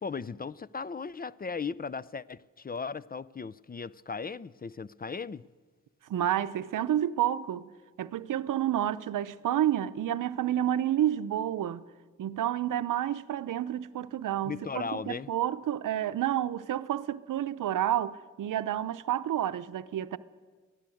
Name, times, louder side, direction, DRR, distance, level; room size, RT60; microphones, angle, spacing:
voice 1, 0.0-5.4 14.4-15.3, left 5 dB, 30° left, 0.5 m, -37 dB
voice 2, 6.1-7.7 8.0-11.8 12.2-20.2, right 11 dB, 80° right, 0.7 m, -30 dB
23.0 x 15.0 x 7.8 m
supercardioid pair, 45°, 32 cm